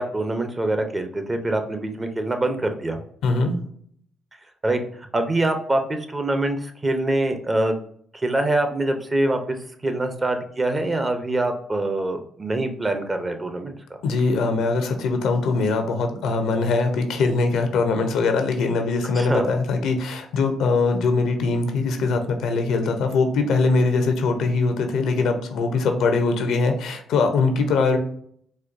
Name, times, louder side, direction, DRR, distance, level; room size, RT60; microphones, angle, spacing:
voice 1, 0.0-3.0 4.6-4.8 5.1-7.8 8.1-9.6 9.8-13.7 19.2-19.5, right 2 dB, 25° right, 7 dB, 0.6 m, -24 dB
voice 2, 3.2-3.6 14.0-28.0, left 3 dB, 80° left, 6 dB, 0.6 m, -22 dB
4.2 x 2.3 x 2.5 m, 0.63 s
cardioid pair, 75°, 0 cm